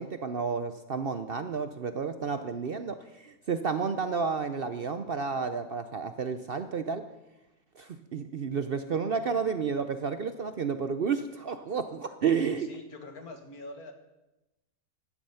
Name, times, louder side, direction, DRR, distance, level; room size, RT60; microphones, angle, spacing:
voice 1, 0.0-7.1 7.8-12.7, right 5 dB, 55° right, 9 dB, 0.7 m, -31 dB
voice 2, 12.6-13.9, left 2 dB, 75° left, 6 dB, 2.1 m, -44 dB
15.5 x 11.0 x 5.6 m, 0.98 s
omnidirectional pair, 1.6 m